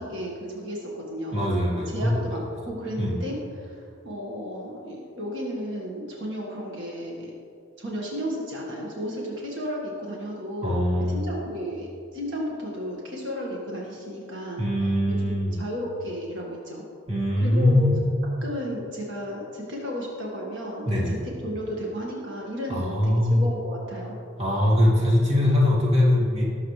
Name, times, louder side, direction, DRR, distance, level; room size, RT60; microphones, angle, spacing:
voice 1, 0.0-1.5 1.9-7.3 7.8-10.8 11.1-16.8 17.4-17.9 18.4-21.1 21.4-24.1, equal, 65° right, -3 dB, 1.7 m, -33 dB
voice 2, 1.3-2.4 3.0-3.1 10.6-11.3 14.6-15.6 17.1-18.0 20.9-21.2 22.7-23.4 24.4-26.5, left 1 dB, 30° right, -5 dB, 2.3 m, -22 dB
18.5 x 7.2 x 3.3 m, 2.4 s
head